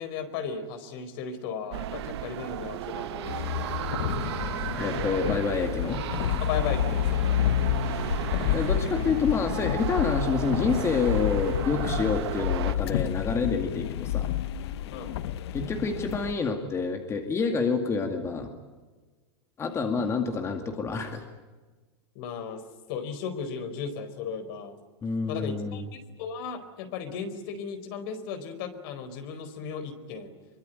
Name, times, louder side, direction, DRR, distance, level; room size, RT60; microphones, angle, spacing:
voice 1, 0.0-3.7 6.4-7.3 8.9-9.0 14.9-15.1 22.1-22.6 22.9-24.8 25.3-30.3, left 6 dB, 55° left, 9 dB, 4.5 m, -36 dB
sound 1, 1.7-12.7, right 13 dB, 70° right, 1.5 m, -35 dB
sound 2, 3.2-16.3, left 11 dB, 70° left, 1.1 m, -29 dB
voice 2, 4.8-6.0 8.5-14.3 15.5-18.5 19.6-21.2 25.0-25.9, left 4 dB, 20° left, 5 dB, 2.3 m, -28 dB
24.0 x 23.5 x 9.4 m, 1.3 s
supercardioid pair, 145°, 14 cm